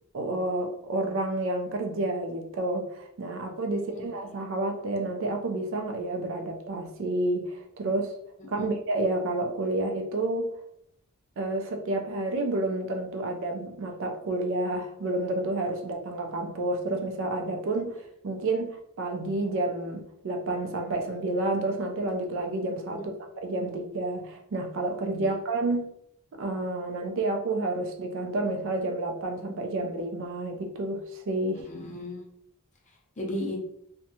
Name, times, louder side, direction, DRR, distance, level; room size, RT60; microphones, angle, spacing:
voice 1, 0.1-8.2 8.5-10.5 11.4-18.0 18.2-18.7 19.0-25.9 26.3-31.7, right 2 dB, 60° right, 4 dB, 0.4 m, -30 dB
voice 2, 3.7-4.1 8.6-8.7 22.9-23.1 25.2-25.3 31.6-32.2 33.2-33.6, left 1 dB, 35° left, -1 dB, 0.6 m, -35 dB
2.7 x 2.1 x 2.6 m, 0.73 s
head